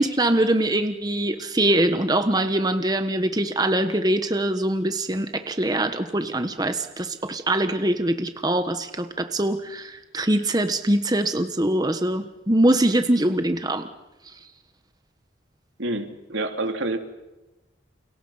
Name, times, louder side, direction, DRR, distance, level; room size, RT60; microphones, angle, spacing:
voice 1, 0.0-13.9, right 1 dB, 20° right, 8 dB, 1.3 m, -23 dB
voice 2, 15.8-17.0, right 2 dB, 90° right, 5 dB, 3.0 m, -27 dB
29.5 x 29.5 x 5.8 m, 1.0 s
head